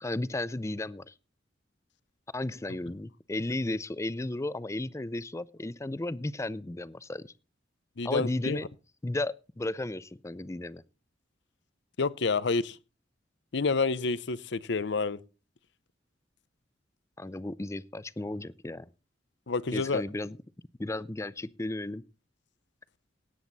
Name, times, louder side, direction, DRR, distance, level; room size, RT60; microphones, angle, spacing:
voice 1, 0.0-1.1 2.3-7.3 8.0-8.7 9.0-10.8 17.2-18.9 19.7-20.4 20.8-22.0, left 2 dB, 15° left, 0.5 m, -34 dB
voice 2, 8.0-8.6 12.0-12.8 13.5-15.2 19.5-20.0, left 4 dB, 65° left, 0.7 m, -28 dB
17.5 x 8.0 x 4.1 m
head